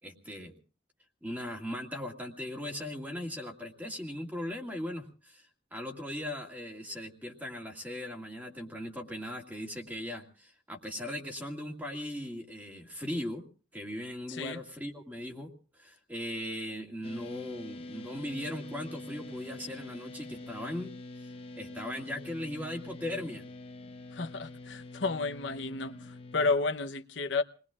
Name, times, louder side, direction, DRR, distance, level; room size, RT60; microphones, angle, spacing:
voice 1, 0.0-0.6 1.2-13.4 13.7-20.9 21.2-21.3 21.6-23.5, left 1 dB, 10° right, 2.1 m, -39 dB
voice 2, 14.3-14.6 24.1-27.4, left 3 dB, 80° left, 0.9 m, -32 dB
sound 1, 17.0-26.5, left 2 dB, 30° left, 0.8 m, -45 dB
28.5 x 20.5 x 2.4 m
head